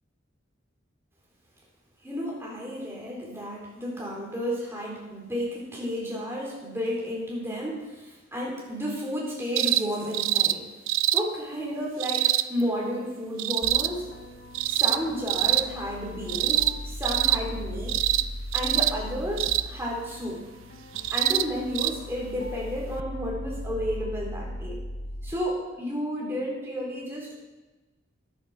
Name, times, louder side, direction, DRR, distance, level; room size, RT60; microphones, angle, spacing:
voice 1, 2.0-10.7 11.1-14.1 14.6-18.0 18.5-20.4 21.1-24.8 25.2-27.5, equal, 15° right, -4 dB, 4.0 m, -32 dB
sound 1, 9.6-9.8 10.1-10.5 10.9-11.2 12.0-12.5 13.4-13.9 14.5-15.0 15.3-15.6 16.3-16.8 17.0-17.4 17.9-18.2 18.5-18.9 19.4-19.7 21.0-21.4 21.8-21.9 23.0-23.1, right 14 dB, 85° right, 0.5 m, -24 dB
sound 2, 13.6-25.3, left 1 dB, 50° left, 0.8 m, -38 dB
13.5 x 11.0 x 5.0 m, 1.2 s
head